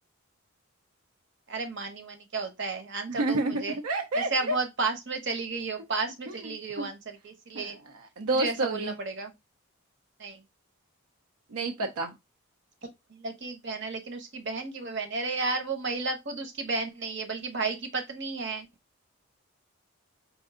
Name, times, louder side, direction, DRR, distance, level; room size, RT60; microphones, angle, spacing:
voice 1, 1.5-3.8 4.3-7.8 8.3-9.3 10.2-10.4 13.1-18.7, right 3 dB, 55° right, 0.9 m, -33 dB
voice 2, 3.1-4.6 6.3-6.9 7.5-9.0 11.5-12.2, right 2 dB, 85° right, 0.6 m, -30 dB
4.5 x 2.6 x 3.7 m
head